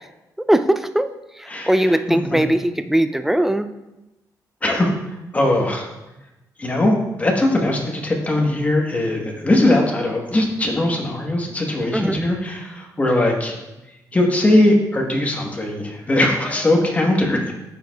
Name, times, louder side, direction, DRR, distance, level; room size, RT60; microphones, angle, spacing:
voice 1, 0.5-1.1 1.4-3.7 11.9-12.2, right 1 dB, 5° right, 10 dB, 0.3 m, -19 dB
voice 2, 1.5-2.0 2.3-2.4 4.6-4.9 5.3-5.9 6.6-13.6 14.1-17.5, left 1 dB, 20° left, 1 dB, 1.2 m, -20 dB
11.5 x 4.8 x 2.3 m, 0.98 s
cardioid pair, 130°, 7 cm